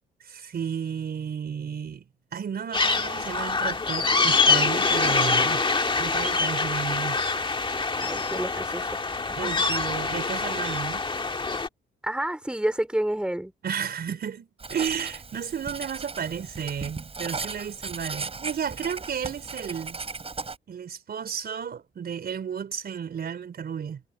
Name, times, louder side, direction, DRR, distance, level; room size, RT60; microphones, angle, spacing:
voice 1, 0.2-2.0 2.3-5.6 6.0-7.2 8.5-8.7 9.3-11.0 13.6-20.0 20.7-24.0, right 7 dB, 50° right, 4.4 m, -33 dB
sound 1, 2.7-11.7, left 4 dB, 25° left, 1.8 m, -25 dB
voice 2, 8.0-8.9 9.3-9.5 12.0-13.5, right 1 dB, 5° right, 4.0 m, -29 dB
Writing, 14.6-20.6, right 4 dB, 30° right, 7.3 m, -37 dB
cardioid pair, 90°, 20 cm